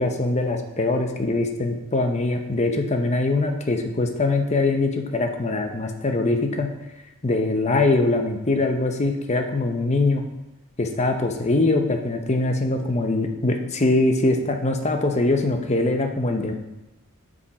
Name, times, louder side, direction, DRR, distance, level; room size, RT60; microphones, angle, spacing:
voice 1, 0.0-6.7 7.2-10.2 10.8-16.5, left 2 dB, 30° left, 5 dB, 0.8 m, -22 dB
8.5 x 5.3 x 4.8 m, 0.99 s
head